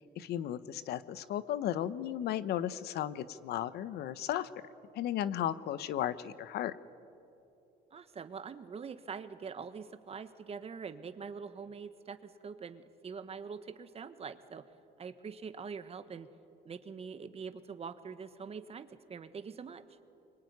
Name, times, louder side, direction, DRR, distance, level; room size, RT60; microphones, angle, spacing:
voice 1, 0.2-4.5 4.9-6.7, left 11 dB, 75° left, 14 dB, 1.0 m, -35 dB
voice 2, 7.9-14.7 15.0-16.3 16.6-19.8, right 6 dB, 35° right, 11 dB, 1.4 m, -44 dB
25.5 x 24.0 x 9.6 m, 2.8 s
cardioid pair, 110°, 17 cm